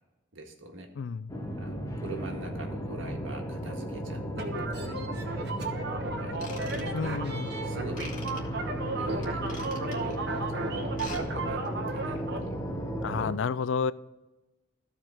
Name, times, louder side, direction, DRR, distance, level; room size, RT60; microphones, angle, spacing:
voice 1, 0.3-0.9 1.6-5.0 6.2-7.2 7.6-8.0 9.0-10.9 11.3-12.8, right 1 dB, 80° right, 1.7 m, -43 dB
voice 2, 1.0-1.3 6.9-7.5 13.0-13.9, left 5 dB, 70° left, 0.4 m, -30 dB
sound 1, 1.3-13.3, equal, 15° left, 0.8 m, -35 dB
sound 2, 4.4-12.4, right 3 dB, 55° right, 1.1 m, -35 dB
Ratchet pawl / Tools, 6.3-7.3 8.0-8.4 9.2-10.1 10.8-11.2 11.5-11.7 12.2-12.3, left 4 dB, 40° left, 1.5 m, -44 dB
14.5 x 4.8 x 3.7 m
head